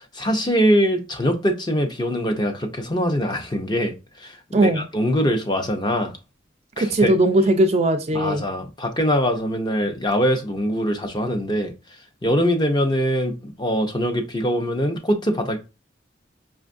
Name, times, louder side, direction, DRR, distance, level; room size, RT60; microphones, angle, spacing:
voice 1, 0.0-6.2 6.8-7.1 8.1-11.7 12.2-15.6, equal, 20° left, 0.5 m, -23 dB
voice 2, 4.5-4.9 6.8-8.4, right 1 dB, 35° right, 0.3 m, -18 dB
5.2 x 2.3 x 2.5 m
head